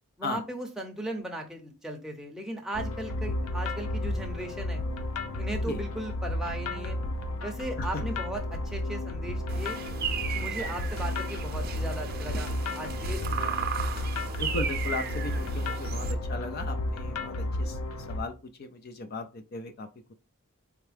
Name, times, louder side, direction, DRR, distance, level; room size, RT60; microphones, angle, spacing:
voice 1, 0.2-4.8 5.4-7.0 7.4-9.8 10.4-13.6, right 1 dB, ahead, 2 dB, 0.8 m, -37 dB
sound 1, 2.7-18.2, left 1 dB, 85° left, 0.7 m, -32 dB
sound 2, 9.5-16.1, right 7 dB, 45° right, 0.6 m, -36 dB
voice 2, 14.4-20.1, left 3 dB, 45° left, 8 dB, 0.4 m, -37 dB
4.4 x 3.6 x 3.4 m, 0.31 s
head